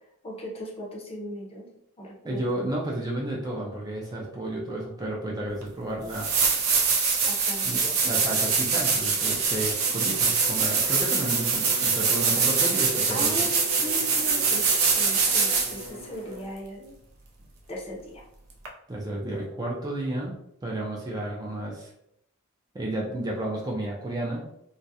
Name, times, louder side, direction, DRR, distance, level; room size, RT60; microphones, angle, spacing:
voice 1, 0.2-1.7 2.0-2.7 7.2-8.2 13.1-17.0 17.7-18.2 23.0-23.2, equal, 30° left, -2 dB, 0.6 m, -38 dB
voice 2, 2.2-6.3 7.6-13.5 18.9-20.3 20.6-21.9 22.7-24.4, right 1 dB, 20° right, -2 dB, 0.3 m, -32 dB
sound 1, 5.6-5.7 6.1-15.9 18.6-18.7, right 5 dB, 80° right, 0.5 m, -24 dB
Bowed string instrument, 9.1-16.5, equal, 65° left, 0.7 m, -41 dB
2.3 x 2.0 x 2.7 m, 0.75 s
head